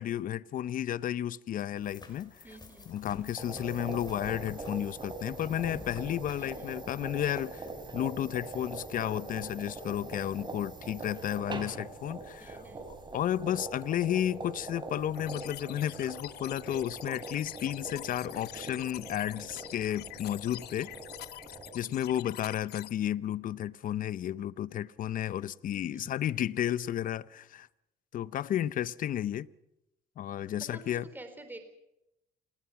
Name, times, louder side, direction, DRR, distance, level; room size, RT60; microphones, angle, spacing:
voice 1, 0.0-2.3 2.9-7.7 7.9-12.6 13.1-20.9 21.7-27.7 28.1-29.5 30.2-31.1, left 11 dB, 55° left, 0.8 m, -32 dB
sound 1, 1.8-7.7, left 3 dB, 25° left, 5.4 m, -50 dB
voice 2, 2.4-2.9 6.4-6.7 12.4-12.9 25.7-26.2 30.6-31.6, right 2 dB, 10° right, 3.9 m, -49 dB
Italian coffee maker moka complete preparation, 3.4-21.7, right 2 dB, 25° right, 4.7 m, -43 dB
sound 2, 15.1-22.9, left 15 dB, 75° left, 1.1 m, -46 dB
27.5 x 19.5 x 5.9 m
cardioid pair, 110°, 17 cm